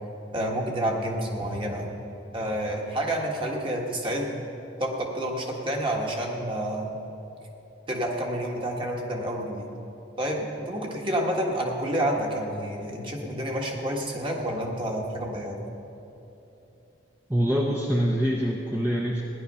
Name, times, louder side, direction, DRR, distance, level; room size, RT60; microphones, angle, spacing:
voice 1, 0.3-1.9 2.3-4.4 4.8-6.9 7.9-9.7 10.2-15.6, right 1 dB, 25° right, 0 dB, 1.6 m, -29 dB
voice 2, 17.3-19.2, equal, 10° right, -2 dB, 0.8 m, -25 dB
16.0 x 11.0 x 5.6 m, 2.9 s
head